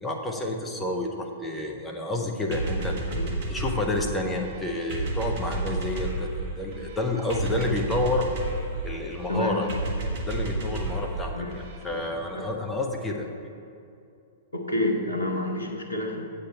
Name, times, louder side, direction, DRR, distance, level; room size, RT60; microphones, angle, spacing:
voice 1, 0.0-3.0 3.5-8.3 8.8-9.7 10.3-13.3, left 2 dB, 10° left, 2 dB, 1.0 m, -29 dB
sound 1, 2.5-12.1, right 2 dB, 50° right, 1.4 m, -32 dB
voice 2, 9.3-9.6 11.3-11.6 12.3-12.5 14.5-16.2, left 1 dB, 80° left, 2 dB, 1.2 m, -28 dB
8.2 x 8.2 x 4.3 m, 2.5 s
figure-of-eight pair, 105°, 0 cm